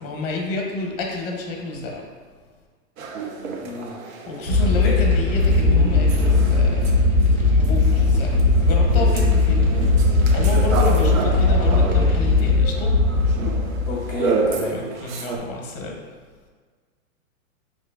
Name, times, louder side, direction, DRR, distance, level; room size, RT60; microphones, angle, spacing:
voice 1, 0.0-2.0 4.3-6.9 7.2-8.3 8.6-9.7 10.3-12.9 14.7-16.0, left 3 dB, 40° left, 1 dB, 0.7 m, -30 dB
sound 1, 3.0-7.4 7.6-15.4, right 4 dB, 70° right, 0.6 m, -30 dB
voice 2, 3.6-3.9 4.5-4.9 11.3-11.7 13.9-14.7, left 2 dB, 15° left, -8 dB, 0.3 m, -32 dB
sound 2, 4.5-14.5, left 3 dB, 30° right, 0.5 m, -18 dB
4.8 x 2.8 x 2.2 m, 1.5 s
hypercardioid pair, 155°, 42 cm